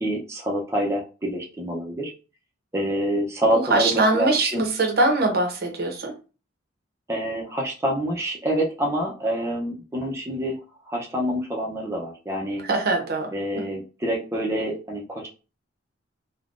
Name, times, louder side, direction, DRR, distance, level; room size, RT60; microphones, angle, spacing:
voice 1, 0.0-2.1 2.7-4.7 7.1-10.6 10.9-12.6 13.3-15.3, right 1 dB, 15° right, -3 dB, 0.6 m, -27 dB
voice 2, 3.5-6.1 12.7-13.3, right 2 dB, 55° right, 2 dB, 0.8 m, -22 dB
3.6 x 2.2 x 2.4 m, 0.33 s
head